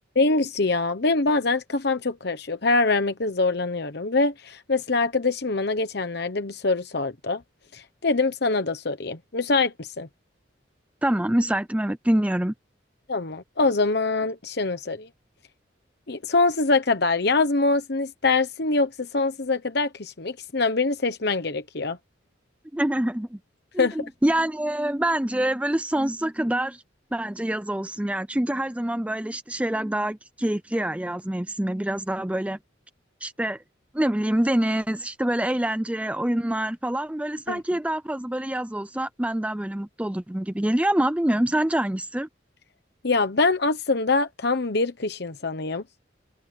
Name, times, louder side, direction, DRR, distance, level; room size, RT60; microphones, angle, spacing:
voice 1, 0.1-7.4 7.7-10.1 13.1-15.1 16.1-22.0 23.8-24.0 37.5-37.6 43.0-45.8, left 3 dB, 60° left, 1.1 m, -24 dB
voice 2, 11.0-12.5 22.7-23.4 23.7-26.8 27.1-32.6 33.2-33.6 33.9-42.3, right 1 dB, 5° right, 0.5 m, -26 dB
head